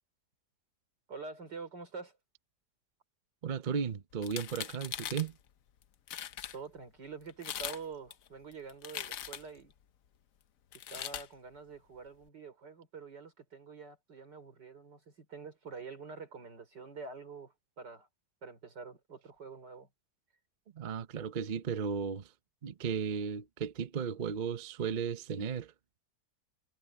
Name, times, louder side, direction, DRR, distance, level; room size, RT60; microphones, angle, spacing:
voice 1, 1.1-2.2 6.5-9.7 10.9-18.1 18.4-19.9, right 4 dB, 85° right, 4.8 m, -46 dB
voice 2, 3.4-5.3 20.7-22.3 22.6-25.7, right 7 dB, 45° right, 0.7 m, -35 dB
sound 1, 4.2-5.3 5.8-5.9 6.1-6.6 7.3-7.8 8.1-9.6 10.7-11.3, left 10 dB, 60° left, 1.1 m, -40 dB
omnidirectional pair, 1.8 m